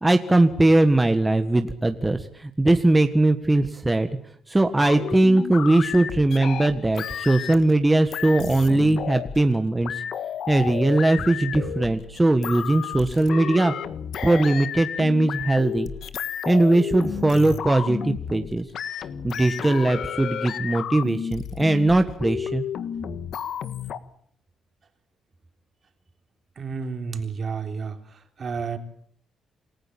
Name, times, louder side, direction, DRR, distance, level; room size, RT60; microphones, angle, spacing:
voice 1, 0.0-4.1 4.5-10.0 10.5-13.7 14.2-15.9 16.4-18.6 19.2-22.6, right 2 dB, 15° right, 7 dB, 1.5 m, -20 dB
sound 1, 4.8-7.8 8.1-9.5 9.8-24.0, left 8 dB, 65° left, 1.5 m, -32 dB
voice 2, 26.6-28.8, right 5 dB, 45° right, 6 dB, 3.6 m, -31 dB
28.0 x 15.0 x 8.7 m, 0.64 s
cardioid pair, 90°, 0 cm